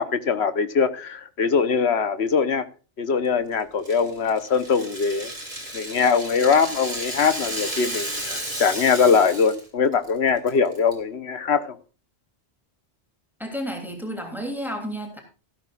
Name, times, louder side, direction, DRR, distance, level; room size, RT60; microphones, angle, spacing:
voice 1, 0.0-2.6 3.0-5.3 5.7-11.8, left 5 dB, 80° left, 1.3 m, -22 dB
Rattle (instrument), 3.8-9.6 9.9-10.1 10.5-10.9, right 1 dB, 35° right, 3.7 m, -33 dB
voice 2, 13.4-15.2, equal, ahead, 3.0 m, -31 dB
15.0 x 12.5 x 2.5 m
omnidirectional pair, 1.1 m